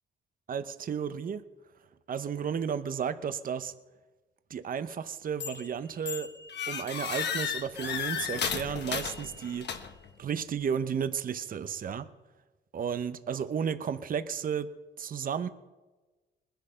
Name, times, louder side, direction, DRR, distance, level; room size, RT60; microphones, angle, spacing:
voice 1, 0.5-1.4 2.1-3.7 4.5-6.3 6.7-9.7 10.2-12.1 12.7-15.5, right 7 dB, 45° right, 12 dB, 0.8 m, -33 dB
sound 1, 5.4-5.7 6.1-10.1, left 7 dB, 60° left, 1.3 m, -34 dB
20.0 x 10.5 x 5.7 m, 1.2 s
cardioid pair, 90°, 20 cm